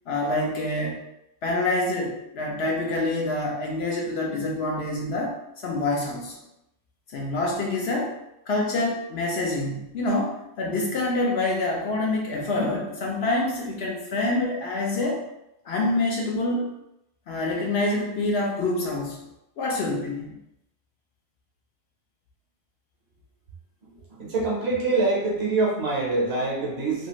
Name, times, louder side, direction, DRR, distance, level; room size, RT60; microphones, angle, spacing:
voice 1, 0.1-1.0 1.4-5.3 5.6-6.4 7.1-8.1 8.5-15.3 15.7-16.7 17.3-19.3 19.6-20.4, left 2 dB, 65° left, -1 dB, 0.7 m, -26 dB
voice 2, 24.2-27.1, right 3 dB, 60° right, -3 dB, 0.9 m, -25 dB
2.8 x 2.4 x 2.9 m, 0.85 s
omnidirectional pair, 1.3 m